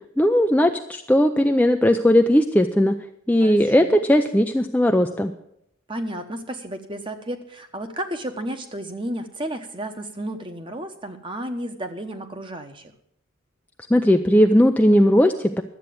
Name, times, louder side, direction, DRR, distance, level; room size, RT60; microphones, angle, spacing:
voice 1, 0.2-2.9 3.3-5.3 13.9-15.6, equal, 5° left, 4 dB, 0.4 m, -18 dB
voice 2, 3.4-4.0 5.9-12.9, right 1 dB, 25° right, 7 dB, 1.1 m, -32 dB
12.0 x 8.2 x 7.6 m, 0.73 s
head